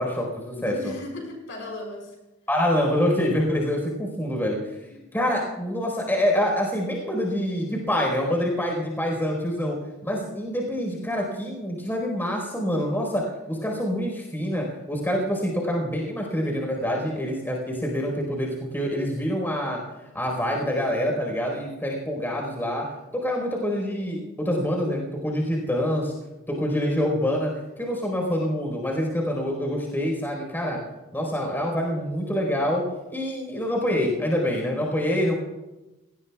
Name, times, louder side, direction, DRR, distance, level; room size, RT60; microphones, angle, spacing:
voice 1, 0.0-0.7 2.5-4.6 5.1-9.8 10.0-19.8 20.1-22.8 23.1-26.1 26.5-30.8 31.1-32.8 33.1-35.4, equal, 10° left, 0 dB, 4.5 m, -26 dB
voice 2, 0.6-2.2 4.9-5.0, left 1 dB, 60° left, 1 dB, 5.9 m, -37 dB
30.0 x 18.5 x 2.4 m, 1.0 s
head